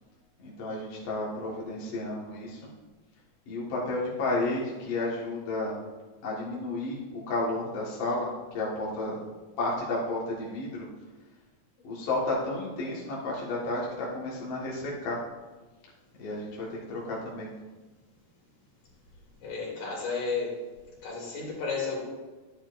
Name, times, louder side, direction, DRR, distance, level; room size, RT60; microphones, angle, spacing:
voice 1, 0.4-2.6 3.5-5.8 6.2-9.2 9.6-10.9 11.8-15.2 16.2-17.5, left 2 dB, 50° left, -5 dB, 2.4 m, -32 dB
voice 2, 19.4-20.5 21.0-22.0, left 4 dB, 75° left, -4 dB, 4.3 m, -32 dB
11.5 x 9.3 x 2.6 m, 1.3 s
omnidirectional pair, 3.8 m